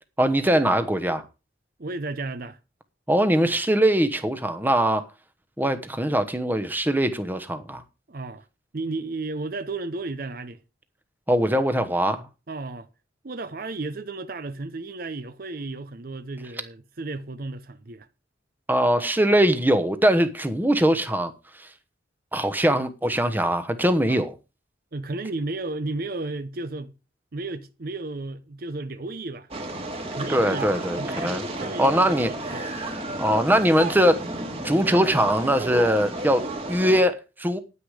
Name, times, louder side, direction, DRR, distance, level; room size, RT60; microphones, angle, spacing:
voice 1, 0.2-1.2 3.1-5.1 5.6-7.8 11.3-12.2 18.7-21.3 21.6-21.7 22.3-24.3 30.3-32.3 32.8-32.9 33.2-34.2 34.6-37.6, equal, 10° right, 1.0 m, -22 dB
voice 2, 1.8-2.6 8.1-8.5 8.7-10.6 12.5-12.9 13.2-18.1 24.1-24.2 24.9-26.9 27.3-29.5 30.1-30.7 31.0-32.6, right 2 dB, 50° right, 0.7 m, -33 dB
sound 1, 29.5-37.0, right 2 dB, 30° right, 2.0 m, -32 dB
9.9 x 9.6 x 4.9 m
head